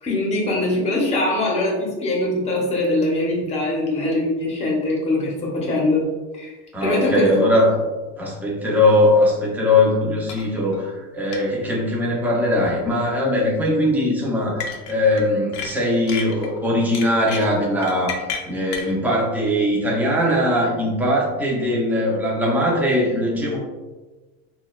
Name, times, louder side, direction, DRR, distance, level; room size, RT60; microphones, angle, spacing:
voice 1, 0.0-6.0 6.3-6.5 6.8-7.3, left 2 dB, 20° left, -2 dB, 0.8 m, -22 dB
voice 2, 6.7-7.7 8.2-18.2 18.4-23.6, left 1 dB, 5° right, -4 dB, 0.6 m, -20 dB
sound 1, 10.3-10.5 10.7-10.8 11.3-11.4 12.6-12.9 14.6-15.2 15.5-16.5 16.9-18.9, left 6 dB, 50° left, 0.6 m, -31 dB
4.0 x 2.3 x 2.3 m, 1.2 s
supercardioid pair, 140°, 30 cm